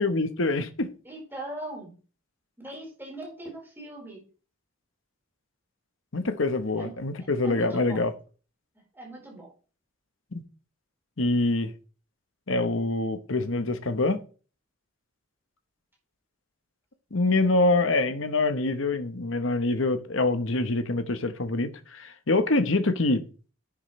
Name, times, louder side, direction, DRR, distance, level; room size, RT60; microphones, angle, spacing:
voice 1, 0.0-0.9 6.1-8.1 10.3-10.4 11.2-11.7 12.5-14.2 17.1-23.2, left 2 dB, 65° left, 1.1 m, -25 dB
voice 2, 1.0-2.0 2.6-4.2 6.8-6.9 7.4-8.0 8.9-9.5, right 1 dB, 10° right, 4.4 m, -40 dB
10.0 x 8.6 x 3.2 m
head